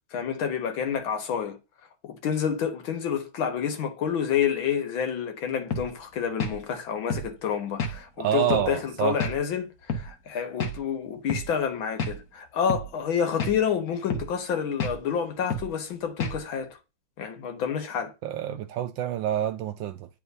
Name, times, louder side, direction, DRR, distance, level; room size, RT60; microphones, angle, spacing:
voice 1, 0.1-1.6 2.0-16.8 17.2-18.1, left 7 dB, 70° left, 1.9 m, -29 dB
sound 1, 5.7-5.9 6.4-6.6 7.1-7.3 7.8-8.0 8.5-8.7 9.2-9.4 9.9-10.1 10.6-10.8 11.3-11.5 12.0-12.2 12.7-12.9 13.4-13.6 14.1-14.3 14.8-15.0 15.5-15.7 16.2-16.4, left 3 dB, 50° left, 1.4 m, -29 dB
voice 2, 8.2-9.2 18.2-20.1, right 11 dB, 75° right, 1.1 m, -27 dB
9.7 x 3.7 x 2.7 m
omnidirectional pair, 2.3 m